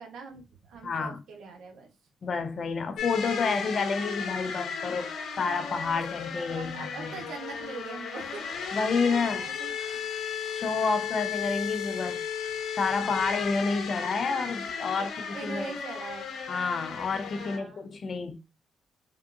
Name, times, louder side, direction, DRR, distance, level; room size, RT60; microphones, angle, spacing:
voice 1, 0.0-1.9 6.5-10.0 14.9-16.3 17.4-17.9, right 5 dB, 80° right, 0.9 m, -43 dB
voice 2, 0.8-1.2 2.2-5.1 5.4-7.2 8.7-9.4 10.5-12.3 12.7-15.1 15.4-15.7 16.5-18.4, left 4 dB, 50° left, 0.4 m, -29 dB
sound 1, 3.0-17.6, left 7 dB, 80° left, 0.7 m, -35 dB
3.5 x 2.4 x 2.5 m
cardioid pair, 100°, 0 cm